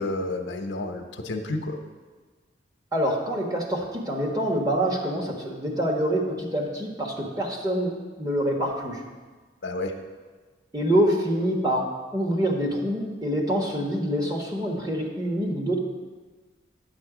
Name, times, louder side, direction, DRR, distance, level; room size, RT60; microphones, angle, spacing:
voice 1, 0.0-1.8 9.6-9.9, left 2 dB, 80° left, 4 dB, 0.9 m, -30 dB
voice 2, 2.9-9.0 10.7-15.8, equal, 20° right, 0 dB, 1.3 m, -26 dB
9.6 x 7.5 x 5.0 m, 1.4 s
head